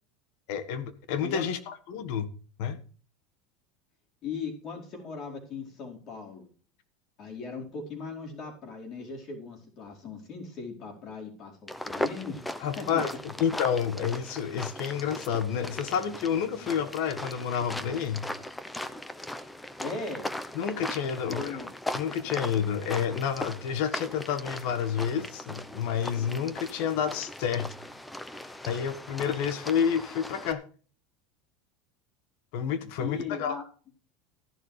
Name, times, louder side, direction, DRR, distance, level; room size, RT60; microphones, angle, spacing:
voice 1, 0.5-2.3 2.6-2.8 12.6-18.3 20.5-21.6 21.9-27.7 28.7-30.6 32.5-33.6, left 8 dB, 65° left, 1.5 m, -29 dB
voice 2, 4.2-6.4 7.2-12.4 12.8-13.0 19.8-20.3 21.3-21.7 33.0-33.6, left 4 dB, 40° left, 4.5 m, -38 dB
sound 1, 11.7-30.5, left 1 dB, 5° left, 0.8 m, -38 dB
14.0 x 11.0 x 3.3 m
supercardioid pair, 145°, 0 cm